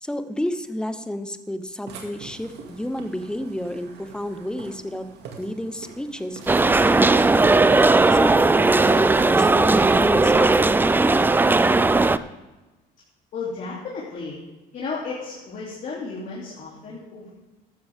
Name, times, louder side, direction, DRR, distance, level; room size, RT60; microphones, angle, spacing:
voice 1, 0.0-5.1 5.4-7.2 8.0-11.2, left 1 dB, 5° left, 9 dB, 0.9 m, -30 dB
Burping eructation, 1.9-10.9, right 5 dB, 80° right, 2.4 m, -44 dB
sound 1, 6.5-12.2, right 3 dB, 10° right, 0.4 m, -17 dB
voice 2, 13.3-14.4 14.7-17.3, left 4 dB, 50° left, -5 dB, 3.1 m, -33 dB
14.5 x 12.0 x 3.6 m, 1.1 s
cardioid pair, 110°, 17 cm